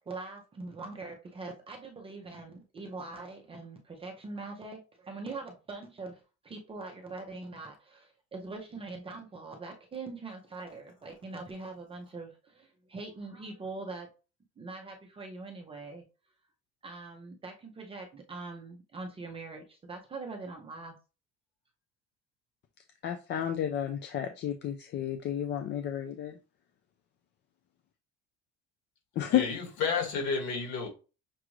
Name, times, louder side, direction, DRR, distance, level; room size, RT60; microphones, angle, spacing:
voice 1, 0.0-14.1 14.6-16.0 16.8-21.0, right 3 dB, 20° right, 0.6 m, -42 dB
voice 2, 23.0-26.3 29.2-29.4, left 10 dB, 40° left, 0.4 m, -31 dB
voice 3, 29.3-30.9, left 5 dB, 60° left, 1.9 m, -31 dB
6.0 x 2.5 x 3.0 m
cardioid pair, 180°, 29 cm